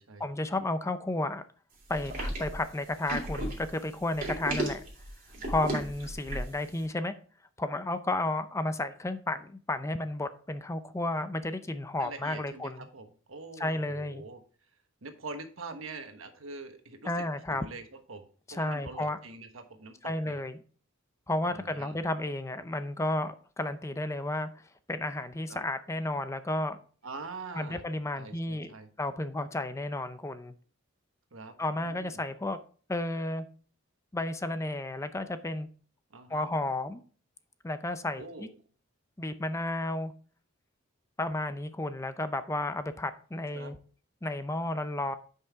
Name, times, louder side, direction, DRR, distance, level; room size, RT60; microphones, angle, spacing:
voice 1, 0.2-1.4 1.9-4.8 5.5-7.2 7.6-12.9 13.6-14.2 17.0-17.6 18.5-19.2 20.0-20.6 21.3-24.5 24.9-26.8 27.5-30.5 31.6-32.6 32.9-33.5 34.1-35.7 36.3-37.0 37.6-38.5 39.2-40.1 41.2-43.8 44.2-45.2, left 2 dB, 15° left, 11 dB, 0.5 m, -32 dB
sound 1, 1.9-6.6, right 1 dB, 45° right, 2.8 m, -34 dB
voice 2, 12.0-14.4 15.0-17.2 17.5-17.8 18.1-20.4 21.4-22.0 27.0-27.8 28.1-28.9 31.3-31.5 31.8-32.2 36.1-36.5 38.2-38.5 43.5-43.7, right 3 dB, 90° right, 6 dB, 1.2 m, -44 dB
9.4 x 5.5 x 3.5 m, 0.42 s
head